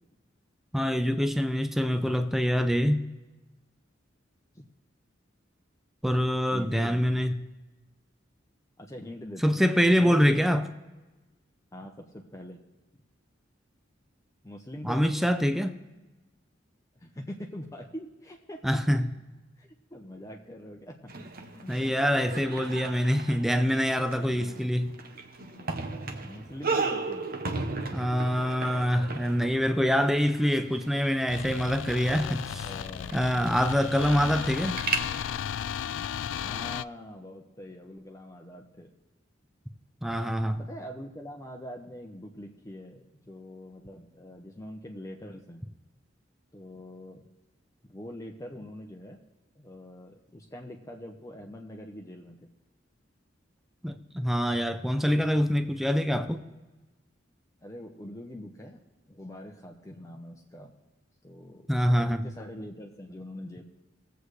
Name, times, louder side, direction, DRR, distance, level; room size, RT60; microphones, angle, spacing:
voice 1, 0.7-3.1 6.0-7.4 9.4-10.7 14.8-15.8 18.6-19.0 21.7-25.0 27.9-32.5 33.1-34.8 40.0-40.6 53.8-56.5 61.7-62.3, equal, ahead, 0.5 m, -25 dB
voice 2, 6.5-7.2 8.8-9.7 10.0-10.4 11.7-12.6 14.4-15.1 17.0-18.8 19.6-22.1 24.2-25.0 25.6-25.7 26.2-27.3 32.2-33.3 35.1-35.5 36.4-38.9 40.6-45.6 46.5-47.3 47.9-49.2 49.6-52.4 57.6-58.8 59.1-60.7 61.2-63.6, left 1 dB, 15° left, 0.8 m, -44 dB
sound 1, 21.1-35.0, right 3 dB, 50° right, 1.0 m, -36 dB
sound 2, 31.3-36.8, left 9 dB, 90° left, 0.3 m, -35 dB
20.5 x 8.0 x 3.2 m
head